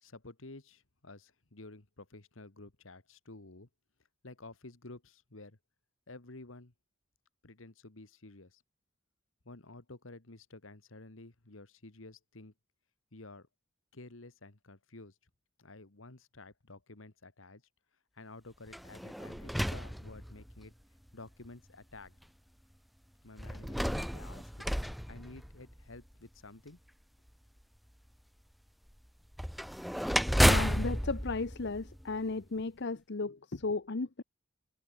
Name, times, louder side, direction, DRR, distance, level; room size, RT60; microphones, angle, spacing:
voice 1, 0.0-3.7 4.2-5.6 6.1-6.7 7.4-8.6 9.5-12.5 13.1-13.5 13.9-15.2 15.6-17.6 18.1-20.7 21.1-22.2 23.2-26.8, left 2 dB, 80° left, 1.9 m, -51 dB
sound 1, 18.7-20.7 21.4-21.5 23.4-26.0 29.3-32.4, equal, ahead, 0.6 m, -31 dB
voice 2, 30.4-34.2, left 3 dB, 60° left, 0.9 m, -35 dB
head